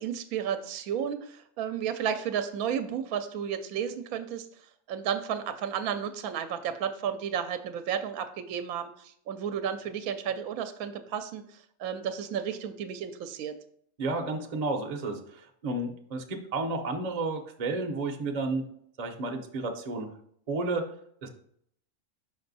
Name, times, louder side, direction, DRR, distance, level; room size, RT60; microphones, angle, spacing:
voice 1, 0.0-4.5 4.9-13.5, right 8 dB, 80° right, 9 dB, 1.0 m, -32 dB
voice 2, 14.0-18.6 19.0-20.1 20.5-20.8 21.2-21.3, right 3 dB, 40° right, 3 dB, 0.6 m, -32 dB
5.6 x 5.2 x 4.0 m, 0.67 s
omnidirectional pair, 1.5 m